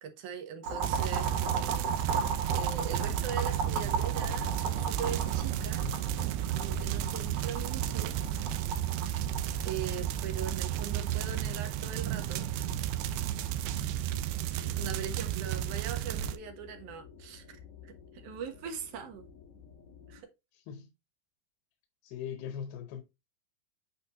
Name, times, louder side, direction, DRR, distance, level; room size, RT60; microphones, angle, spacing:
voice 1, 0.0-1.9 2.5-5.9 6.5-8.2 9.7-12.9 14.5-17.6 17.8-19.3 20.1-20.3, right 7 dB, 65° right, 2.3 m, -41 dB
Boiling, 0.6-13.9, right 4 dB, 50° right, 2.4 m, -38 dB
sound 1, 0.8-16.4, right 11 dB, 85° right, 2.5 m, -32 dB
sound 2, 2.7-20.2, left 6 dB, 45° left, 2.7 m, -50 dB
voice 2, 14.6-15.0 20.5-20.9 22.0-23.0, left 8 dB, 90° left, 2.7 m, -41 dB
8.5 x 4.3 x 2.9 m
omnidirectional pair, 4.3 m